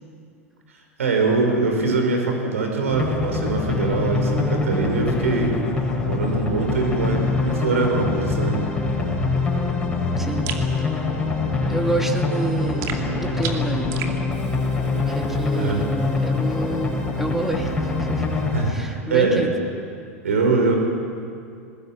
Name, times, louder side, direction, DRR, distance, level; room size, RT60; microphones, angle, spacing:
voice 1, 1.0-5.6 6.0-8.6 15.5-15.8 18.5-19.5 20.2-20.7, right 3 dB, 70° right, 3 dB, 5.2 m, -22 dB
sound 1, 2.9-18.7, left 3 dB, 10° left, 6.6 m, -24 dB
voice 2, 10.2-10.6 11.7-14.0 15.1-15.8 16.2-18.4 18.7-19.5, right 1 dB, 5° right, 3 dB, 2.9 m, -28 dB
sound 2, 10.5-10.7 12.8-14.2, right 8 dB, 40° right, 2.4 m, -32 dB
21.5 x 20.0 x 9.1 m, 2.4 s
figure-of-eight pair, 85°, 8 cm